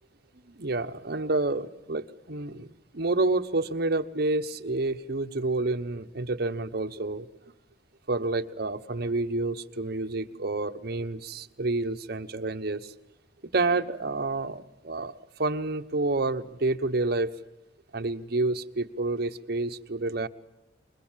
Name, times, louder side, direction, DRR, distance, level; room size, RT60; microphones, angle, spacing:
voice 1, 0.5-7.3 8.1-12.9 13.5-17.3 17.9-20.3, right 2 dB, 60° right, 1.1 m, -29 dB
25.0 x 22.0 x 7.5 m
head